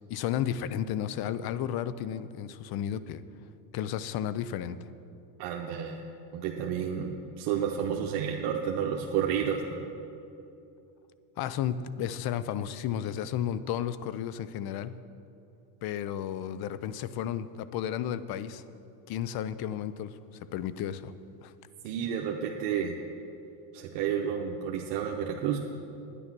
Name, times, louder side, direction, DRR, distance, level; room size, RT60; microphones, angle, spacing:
voice 1, 0.1-3.2 3.7-4.8 11.4-14.9 15.8-18.6 19.1-20.1 20.5-21.1 21.4-21.5, left 10 dB, 50° left, 15 dB, 0.6 m, -33 dB
voice 2, 5.4-6.0 6.3-9.6 21.8-23.0 23.7-25.6, right 8 dB, 80° right, 0 dB, 1.0 m, -31 dB
9.9 x 9.9 x 6.0 m, 2.8 s
supercardioid pair, 115°, 49 cm